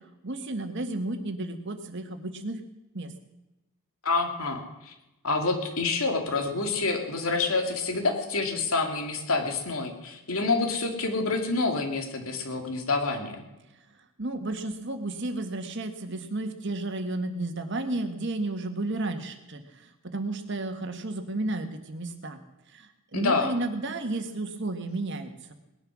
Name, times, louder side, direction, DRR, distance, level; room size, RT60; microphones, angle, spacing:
voice 1, 0.2-2.6 2.9-3.1 14.2-22.4 22.7-25.5, right 2 dB, 55° right, 7 dB, 1.6 m, -32 dB
voice 2, 4.0-4.9 5.2-13.4 23.1-23.6, left 3 dB, 75° left, 4 dB, 2.6 m, -27 dB
19.5 x 11.0 x 6.3 m, 0.98 s
head